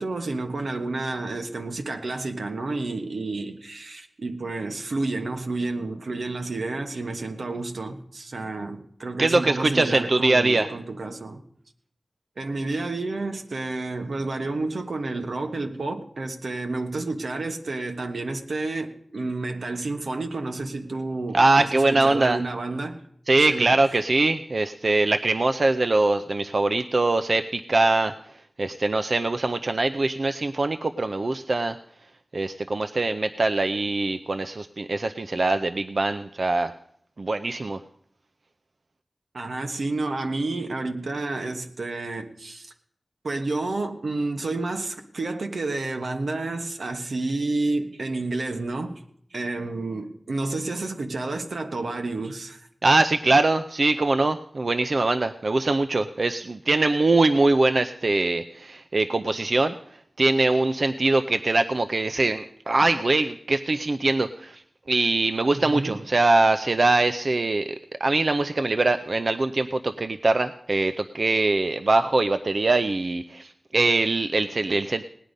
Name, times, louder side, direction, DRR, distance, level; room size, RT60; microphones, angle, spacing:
voice 1, 0.0-11.4 12.4-23.0 23.5-23.7 39.3-42.7 43.2-49.0 49.3-52.7 65.5-66.0, right 2 dB, 85° right, 1.2 m, -30 dB
voice 2, 9.2-10.7 21.3-22.4 23.3-28.1 28.6-31.8 32.3-36.7 37.2-37.8 52.8-59.7 60.2-64.6 64.9-67.7 68.0-75.0, right 2 dB, 60° right, 0.5 m, -22 dB
18.0 x 9.9 x 5.2 m
wide cardioid pair, 70°, 0 cm